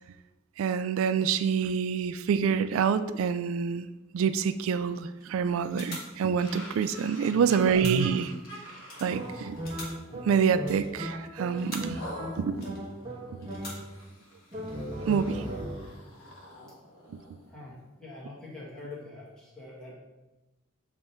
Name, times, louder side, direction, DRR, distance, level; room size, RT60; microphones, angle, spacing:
voice 1, 0.6-3.9 4.1-8.3 9.0-9.6 10.2-12.0 12.4-12.8 15.1-15.5 17.1-17.2, right 6 dB, 80° right, 12 dB, 0.3 m, -27 dB
sound 1, 5.2-5.4 5.7-7.3 7.5-8.4 8.8-12.1 12.5-13.1 13.4-14.2 14.5-14.7, left 2 dB, 45° left, 1.6 m, -46 dB
sound 2, 6.4-10.2 10.7-10.9 11.9-17.5, equal, 75° left, 1.6 m, -47 dB
voice 2, 7.1-7.5 17.4-19.9, left 2 dB, 5° left, -7 dB, 1.8 m, -45 dB
sound 3, 9.1-14.1 14.5-16.0, right 1 dB, 25° right, 1.3 m, -38 dB
7.9 x 3.5 x 4.4 m, 1.0 s
head